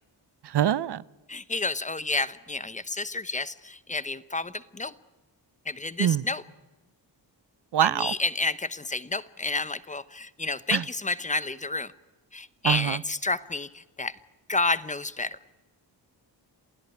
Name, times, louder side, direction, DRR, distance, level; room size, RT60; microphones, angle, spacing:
voice 1, 0.4-1.0 6.0-6.2 7.7-8.1 10.7-10.8 12.6-13.0, right 10 dB, 65° right, 20 dB, 0.7 m, -24 dB
voice 2, 1.3-4.9 5.7-6.4 7.9-11.9 12.3-14.1 14.5-15.4, left 3 dB, 15° left, 15 dB, 0.9 m, -30 dB
27.5 x 16.5 x 9.5 m, 1.2 s
wide cardioid pair, 120°, 44 cm